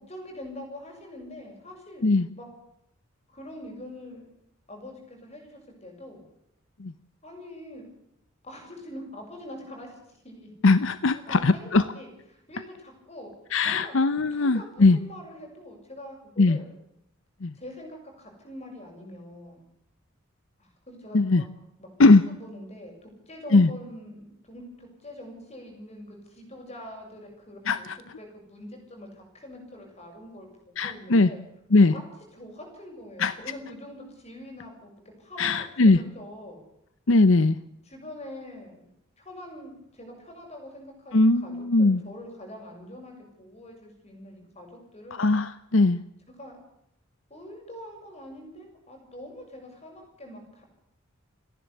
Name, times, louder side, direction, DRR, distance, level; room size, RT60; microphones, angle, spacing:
voice 1, 0.1-2.5 3.3-4.2 4.7-6.2 7.2-7.9 8.4-10.5 11.1-12.1 12.5-13.3 13.6-13.9 14.2-16.7 17.5-19.7 20.6-21.4 21.8-31.4 31.9-32.0 32.3-36.6 37.9-38.9 39.2-45.3 46.4-46.6 47.3-50.6, left 1 dB, 30° left, 2 dB, 7.1 m, -44 dB
voice 2, 10.6-11.8 13.5-15.0 16.4-16.6 17.4-17.5 21.1-21.4 22.0-22.3 23.5-23.7 27.7-28.0 30.8-31.3 31.7-31.9 33.2-33.3 35.4-36.0 37.1-37.6 41.1-42.0 45.2-46.0, left 3 dB, 70° left, 14 dB, 0.7 m, -20 dB
29.0 x 11.0 x 8.3 m, 0.80 s
head